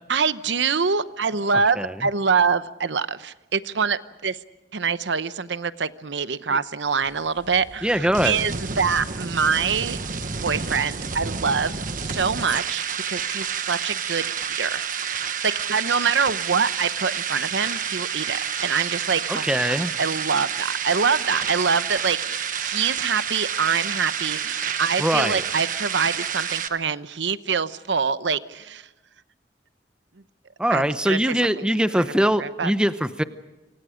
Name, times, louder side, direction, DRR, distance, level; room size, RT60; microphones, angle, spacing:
voice 1, 0.1-4.4 4.7-10.0 10.4-14.2 14.6-14.8 15.4-28.8 30.7-31.2 31.6-31.7 32.0-32.1 32.4-32.7, right 5 dB, 80° right, 14 dB, 0.9 m, -25 dB
sound 1, 7.0-26.7, right 7 dB, 45° right, 1.3 m, -29 dB
voice 2, 7.8-8.4 19.3-19.9 25.0-25.4 30.6-33.2, equal, 5° right, 11 dB, 0.8 m, -22 dB
28.0 x 25.5 x 5.1 m, 1.1 s
head